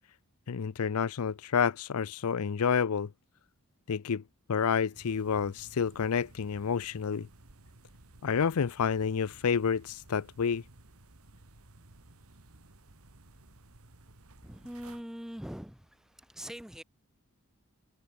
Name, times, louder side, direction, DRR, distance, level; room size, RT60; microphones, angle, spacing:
voice 1, 0.5-3.1 3.9-4.2 4.5-7.3 8.2-10.6, left 6 dB, 80° left, 0.5 m, -29 dB
sound 1, 4.9-15.0, right 2 dB, 75° right, 2.1 m, -56 dB
voice 2, 14.4-15.8 16.3-16.8, equal, ahead, 0.5 m, -42 dB
head